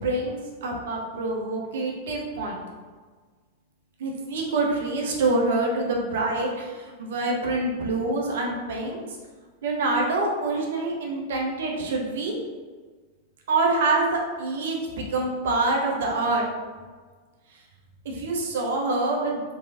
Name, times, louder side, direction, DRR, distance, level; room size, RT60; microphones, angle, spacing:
voice 1, 0.0-2.6 4.0-9.0 9.6-12.3 13.5-16.4 18.0-19.4, right 2 dB, 60° right, 0 dB, 0.6 m, -26 dB
3.0 x 3.0 x 2.5 m, 1.5 s
figure-of-eight pair, 90°, 0 cm